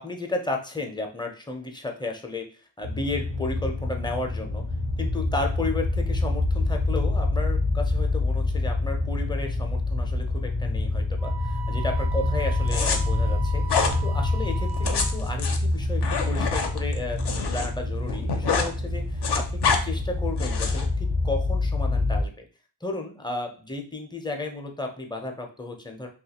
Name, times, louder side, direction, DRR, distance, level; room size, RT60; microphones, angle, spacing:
voice 1, 0.0-2.4 2.8-4.6 5.0-13.6 14.0-22.4 22.8-26.1, left 2 dB, 10° left, 3 dB, 0.5 m, -33 dB
sound 1, 2.8-22.2, left 2 dB, 90° right, 1.1 m, -26 dB
Wind instrument woodwind instrument, 11.2-15.4, right 9 dB, 55° right, 0.5 m, -39 dB
sound 2, 12.7-13.0 13.7-14.0 14.7-17.7 18.0-18.7 19.0-19.8 20.4-20.9, left 5 dB, 60° left, 0.5 m, -26 dB
2.6 x 2.4 x 2.8 m, 0.38 s
wide cardioid pair, 50°, 45 cm